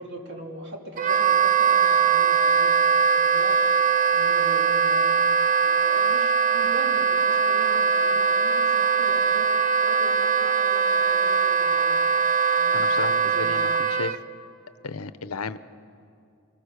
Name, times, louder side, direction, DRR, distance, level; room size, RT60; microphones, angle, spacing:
voice 1, 0.0-3.6 4.1-5.2 5.6-9.5 9.8-12.0 12.6-12.9 13.2-13.6, equal, 50° right, 1 dB, 2.9 m, -40 dB
Wind instrument woodwind instrument, 1.0-14.2, right 6 dB, 35° right, 0.5 m, -21 dB
voice 2, 12.7-14.2 14.8-15.6, left 4 dB, 80° left, 14 dB, 0.7 m, -33 dB
25.0 x 20.0 x 6.7 m, 2.4 s
head